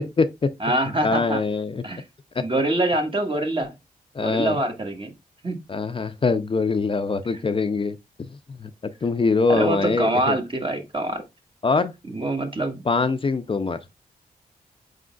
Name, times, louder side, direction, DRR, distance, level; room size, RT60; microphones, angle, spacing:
voice 1, 0.0-0.5 1.0-1.8 2.4-2.5 4.1-4.6 5.7-8.0 8.6-8.7 9.0-10.4 11.6-11.9 12.9-13.8, left 4 dB, 35° left, 0.4 m, -23 dB
voice 2, 0.6-1.4 1.8-2.0 2.4-3.7 4.2-5.1 5.4-5.5 9.5-11.2 12.1-12.8, right 1 dB, 35° right, 1.3 m, -24 dB
4.8 x 3.7 x 2.3 m
cardioid pair, 55°, 16 cm